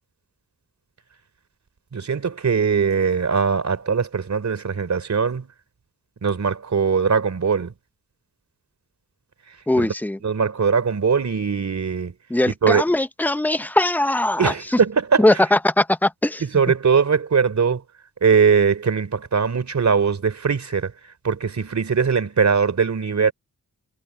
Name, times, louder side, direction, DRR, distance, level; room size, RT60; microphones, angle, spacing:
voice 1, 1.9-5.5 6.2-7.7 10.2-12.1 12.6-12.8 14.4-15.3 16.5-17.8 18.2-20.9 21.2-23.3, right 6 dB, 50° right, 3.7 m, -20 dB
voice 2, 9.7-10.2 12.3-14.8 15.2-16.4, left 1 dB, 5° left, 0.6 m, -20 dB
wide cardioid pair, 100°, 35 cm